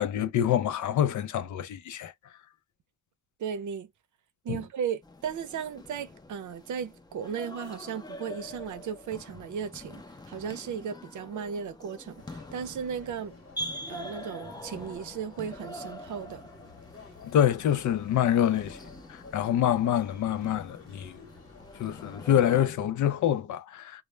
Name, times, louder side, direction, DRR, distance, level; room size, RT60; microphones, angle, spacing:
voice 1, 0.0-2.1 4.5-4.6 17.2-18.8 19.1-21.3 21.7-24.0, left 10 dB, 85° left, 0.5 m, -26 dB
voice 2, 3.4-3.9 4.4-13.3 13.9-16.5, right 7 dB, 80° right, 0.6 m, -36 dB
sound 1, 5.0-22.7, left 1 dB, 15° left, 0.4 m, -45 dB
sound 2, 12.2-22.5, left 4 dB, 50° left, 0.9 m, -52 dB
2.1 x 2.0 x 3.1 m
wide cardioid pair, 105°, 29 cm